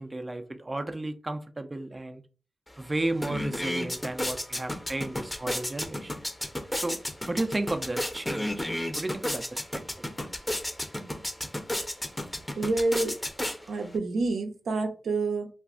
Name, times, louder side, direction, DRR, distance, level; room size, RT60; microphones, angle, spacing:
voice 1, 0.0-2.2 2.8-6.1 6.7-7.0 7.3-8.7 9.0-9.8 10.6-10.7, right 2 dB, 30° right, 0.4 m, -33 dB
sound 1, 2.7-2.8 3.1-14.0, left 1 dB, 15° left, 0.6 m, -33 dB
voice 2, 12.6-13.1 13.7-15.5, right 3 dB, 85° right, 0.5 m, -28 dB
2.4 x 2.3 x 3.5 m
supercardioid pair, 40°, 0 cm